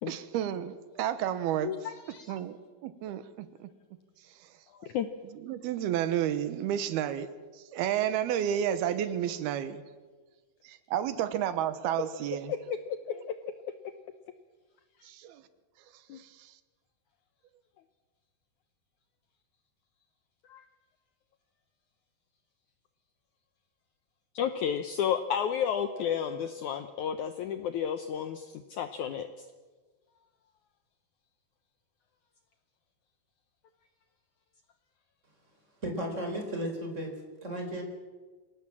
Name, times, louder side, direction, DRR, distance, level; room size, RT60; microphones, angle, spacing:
voice 1, 0.1-1.7 2.3-2.6 2.8-3.7 5.4-7.3 7.7-9.8 10.6-12.5 15.1-15.4 16.2-16.3, right 10 dB, 85° right, 13 dB, 3.1 m, -31 dB
voice 2, 1.6-2.4 4.8-5.1 13.1-13.2 16.1-16.2 20.5-20.6 24.3-29.3, left 8 dB, 75° left, 9 dB, 1.8 m, -32 dB
voice 3, 35.8-37.1 37.4-37.8, right 1 dB, 20° right, 3 dB, 4.1 m, -34 dB
26.0 x 17.5 x 7.4 m, 1.4 s
omnidirectional pair, 4.4 m